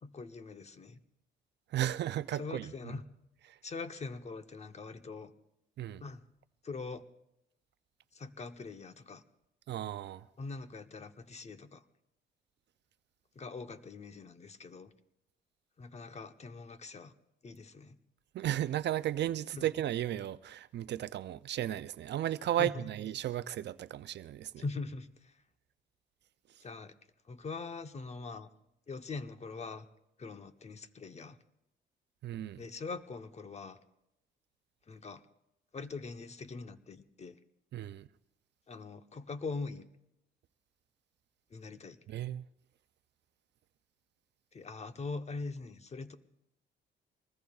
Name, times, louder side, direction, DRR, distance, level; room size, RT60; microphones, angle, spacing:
voice 1, 0.0-1.0 2.3-3.0 3.6-5.3 6.0-6.2 6.6-7.1 8.1-9.2 10.4-11.8 13.3-14.9 15.8-17.1 17.4-18.0 19.5-19.7 22.6-22.8 24.6-25.4 26.6-26.9 27.2-28.5 28.9-29.9 30.2-31.4 32.6-33.8 34.9-35.2 35.7-37.4 38.7-39.8 41.5-42.0 44.5-46.1, left 3 dB, 35° left, 0.9 m, -42 dB
voice 2, 1.7-2.9 5.8-6.0 9.7-10.3 18.3-24.6 32.2-32.6 37.7-38.1 42.1-42.4, right 12 dB, 60° right, 0.5 m, -34 dB
24.5 x 20.0 x 2.4 m
cardioid pair, 90°, 20 cm